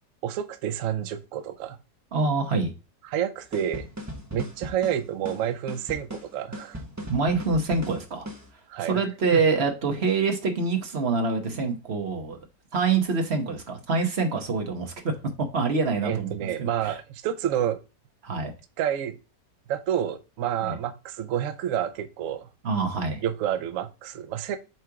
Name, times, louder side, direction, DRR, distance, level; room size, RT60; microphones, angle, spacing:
voice 1, 0.2-1.8 3.0-3.9 4.3-6.8 8.7-9.0 9.3-9.4 16.0-17.8 18.8-19.2 19.7-22.5 23.2-24.6, right 10 dB, 65° right, 0.9 m, -29 dB
voice 2, 2.1-2.7 7.1-8.3 8.8-12.4 12.7-15.1 15.5-16.3 16.6-17.0 18.2-18.5 20.6-20.8 22.6-23.2, right 4 dB, 40° right, 1.2 m, -25 dB
sound 1, 3.5-8.5, equal, 10° right, 0.8 m, -38 dB
7.6 x 3.3 x 4.7 m
omnidirectional pair, 1.9 m